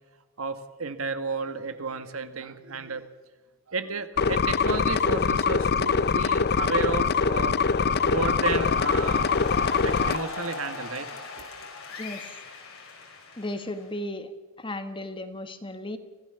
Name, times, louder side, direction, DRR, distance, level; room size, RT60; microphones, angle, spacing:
voice 1, 0.4-3.1 3.7-9.5 9.8-11.1 11.4-11.5, right 4 dB, 90° right, 9 dB, 1.7 m, -32 dB
sound 1, 4.2-10.2, left 5 dB, 50° left, 0.5 m, -23 dB
sound 2, 7.1-14.0, left 3 dB, 85° left, 5.4 m, -39 dB
voice 2, 13.4-14.3 14.6-16.0, left 1 dB, 25° left, 9 dB, 1.5 m, -35 dB
24.5 x 16.0 x 7.0 m, 1.3 s
head